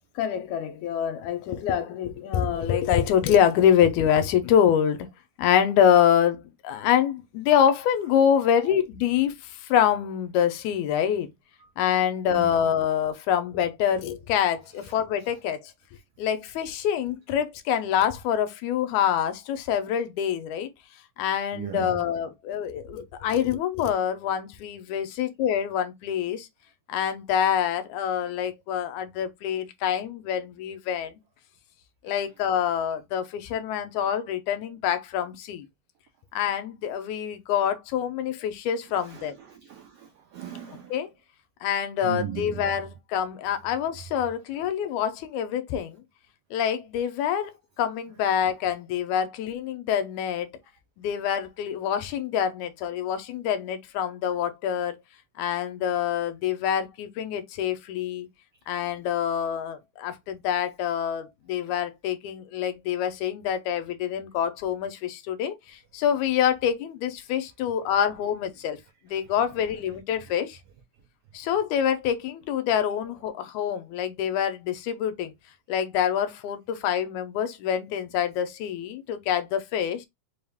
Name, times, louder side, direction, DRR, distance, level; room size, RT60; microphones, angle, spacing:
voice 1, 0.2-5.1 5.4-11.3 11.8-15.7 16.2-20.7 21.2-26.5 26.9-31.2 32.0-35.7 36.3-39.4 40.9-41.1 41.6-46.0 46.5-47.5 47.8-50.5 51.0-54.9 55.4-58.3 58.7-68.8 69.0-70.6 71.3-75.3 75.7-80.1, left 9 dB, 80° left, 2.0 m, -26 dB
voice 2, 21.5-22.0 32.1-32.2 39.0-40.9 42.0-42.6, right 9 dB, 85° right, 1.3 m, -37 dB
5.3 x 2.3 x 3.4 m
omnidirectional pair, 3.4 m